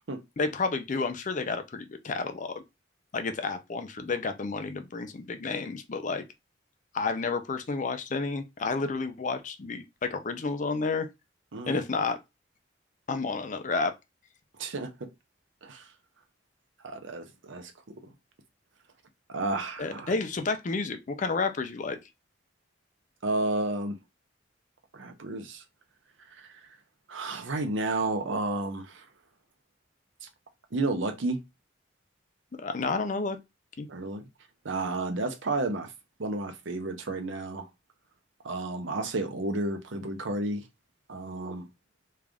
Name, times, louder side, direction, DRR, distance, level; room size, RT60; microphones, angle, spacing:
voice 1, 0.4-2.6 3.1-6.2 6.9-11.1 11.7-12.2 13.1-13.9 19.8-22.0 32.6-33.4 33.8-33.9, left 4 dB, 40° left, 0.5 m, -30 dB
voice 2, 14.6-14.9 15.6-15.9 16.8-17.7 18.0-18.1 19.3-20.1 23.2-24.0 24.9-25.6 26.4-26.5 27.1-29.0 30.2-30.3 30.7-31.4 33.9-34.2 34.6-35.9 36.2-37.7 38.4-40.6 41.1-41.7, right 2 dB, 85° right, 0.8 m, -31 dB
3.3 x 2.5 x 3.4 m
head